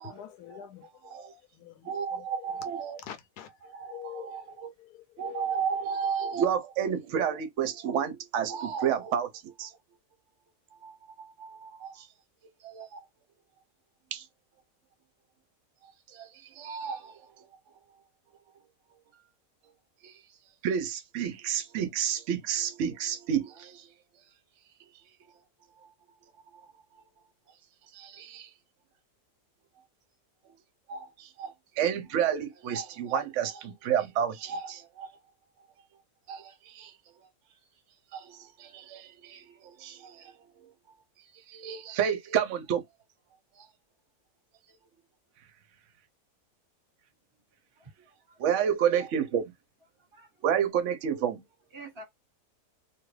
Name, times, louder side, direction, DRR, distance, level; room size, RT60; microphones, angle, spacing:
voice 1, 0.0-2.6 3.0-5.6, left 10 dB, 75° left, 1.1 m, -46 dB
voice 2, 1.8-3.0 3.7-4.7 5.2-9.7 10.8-12.1 12.6-13.0 14.1-14.3 16.1-17.5 20.0-20.1 20.6-23.9 26.5-26.6 27.9-28.5 30.9-35.1 36.3-36.9 38.1-40.3 41.5-42.8 43.6-43.7 48.4-49.5 50.4-51.4, right 8 dB, 60° right, 0.8 m, -31 dB
voice 3, 47.8-48.4 50.1-50.4 51.7-52.0, right 3 dB, 20° right, 1.1 m, -48 dB
2.8 x 2.4 x 3.1 m
omnidirectional pair, 1.7 m